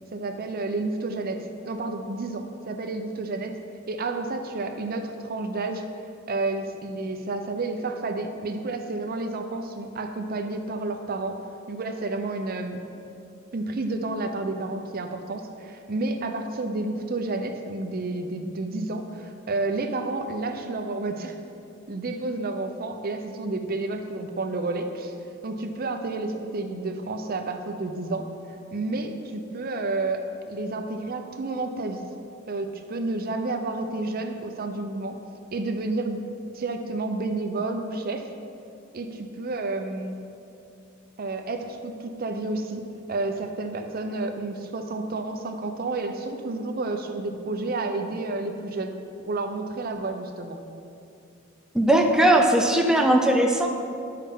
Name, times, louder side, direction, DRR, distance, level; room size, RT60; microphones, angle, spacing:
voice 1, 0.1-3.6 3.9-5.8 6.3-11.4 11.7-12.8 13.5-21.3 21.9-25.1 25.4-28.3 28.7-32.0 32.5-35.2 35.5-36.2 36.5-38.3 38.9-40.2 41.2-42.8 43.1-49.0 49.2-50.6, right 2 dB, 45° right, 6 dB, 0.6 m, -30 dB
voice 2, 51.7-53.7, right 1 dB, 5° right, 2 dB, 0.5 m, -19 dB
10.0 x 5.6 x 3.7 m, 2.6 s
head